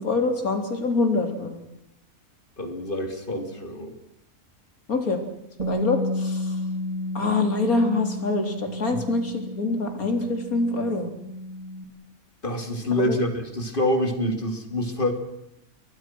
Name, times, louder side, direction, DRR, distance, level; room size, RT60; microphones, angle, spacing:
voice 1, 0.0-1.6 4.9-5.2 5.6-6.5 7.1-11.1 13.0-13.2, left 3 dB, 85° left, 5 dB, 4.1 m, -25 dB
voice 2, 2.6-3.9 8.9-9.0 12.4-15.1, left 1 dB, 35° left, 6 dB, 3.5 m, -26 dB
Bass guitar, 5.6-11.8, left 1 dB, 25° right, 3.2 m, -32 dB
30.0 x 22.5 x 6.2 m, 0.79 s
omnidirectional pair, 1.5 m